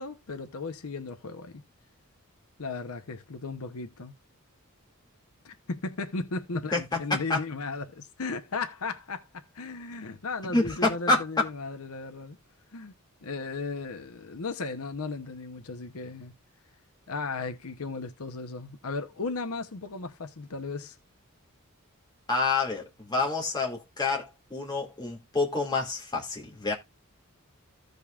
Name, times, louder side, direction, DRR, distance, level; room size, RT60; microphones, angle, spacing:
voice 1, 0.0-1.6 2.6-4.1 5.4-12.4 12.7-12.9 13.2-16.3 17.1-21.0, left 3 dB, 80° left, 0.8 m, -36 dB
voice 2, 10.5-11.2 22.3-26.7, left 3 dB, 20° left, 2.3 m, -28 dB
15.5 x 5.3 x 2.4 m
head